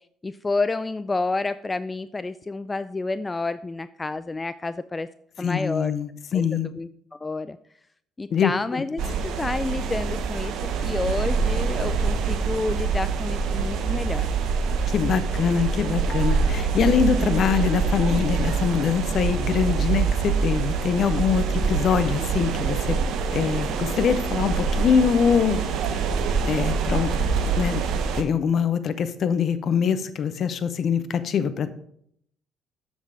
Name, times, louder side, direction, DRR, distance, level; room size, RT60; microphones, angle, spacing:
voice 1, 0.2-5.1 5.4-5.9 6.3-7.6 8.2-14.3, left 3 dB, 25° left, 14 dB, 0.3 m, -29 dB
voice 2, 5.4-6.7 8.3-8.8 14.9-23.0 23.3-25.6 26.4-27.1 27.6-27.8 28.1-31.7, left 7 dB, 55° left, 12 dB, 0.7 m, -23 dB
sound 1, 9.0-28.2, right 5 dB, 65° right, 0.8 m, -25 dB
7.3 x 6.2 x 4.8 m, 0.69 s
hypercardioid pair, 50°, 0 cm